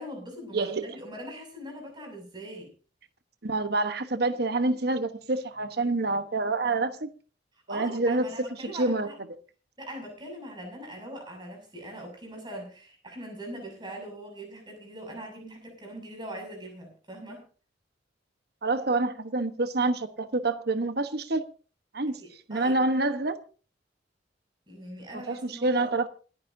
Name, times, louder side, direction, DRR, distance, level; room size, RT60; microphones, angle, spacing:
voice 1, 0.0-2.7 7.7-9.1 9.8-17.4 22.2-22.8 24.7-26.1, right 1 dB, 25° right, 6.8 m, -41 dB
voice 2, 0.5-0.9 3.4-7.1 7.7-8.3 8.6-9.1 18.6-21.4 21.9-22.2 22.5-23.4 25.1-26.1, right 2 dB, 60° right, 1.1 m, -27 dB
28.0 x 10.0 x 2.7 m
head